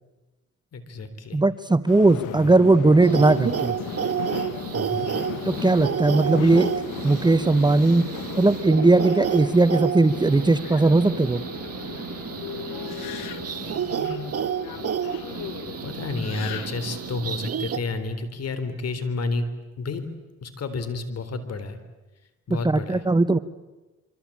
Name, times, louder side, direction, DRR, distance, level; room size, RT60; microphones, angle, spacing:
voice 1, 0.7-1.4 2.3-2.5 4.7-5.1 13.6-14.3 15.8-19.5 19.8-20.1 20.4-21.8 22.5-23.0, left 3 dB, 55° left, 11 dB, 3.7 m, -31 dB
voice 2, 1.3-3.8 5.5-6.7 7.0-8.1 8.4-11.4 22.5-23.4, right 2 dB, 15° right, 14 dB, 0.9 m, -19 dB
Subway metro underground, 1.9-17.1, left 12 dB, 90° left, 1.4 m, -37 dB
sound 1, 3.0-17.8, right 8 dB, 50° right, 1.5 m, -30 dB
27.0 x 24.5 x 8.6 m, 1.1 s
cardioid pair, 90°, 30 cm